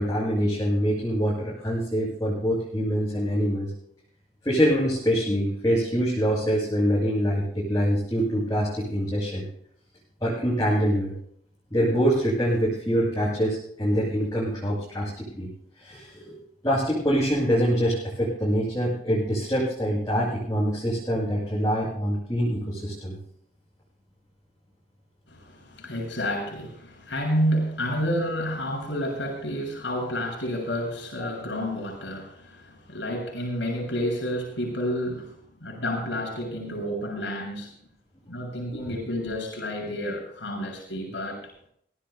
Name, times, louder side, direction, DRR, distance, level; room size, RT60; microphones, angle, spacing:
voice 1, 0.0-3.7 4.4-9.4 10.2-11.1 11.7-15.5 15.8-16.3 16.6-23.2 31.2-31.3 38.9-39.0, equal, 20° left, -6 dB, 6.6 m, -25 dB
voice 2, 25.3-37.7 38.3-41.5, equal, 75° left, 0 dB, 7.1 m, -30 dB
23.0 x 18.0 x 2.2 m, 0.66 s
head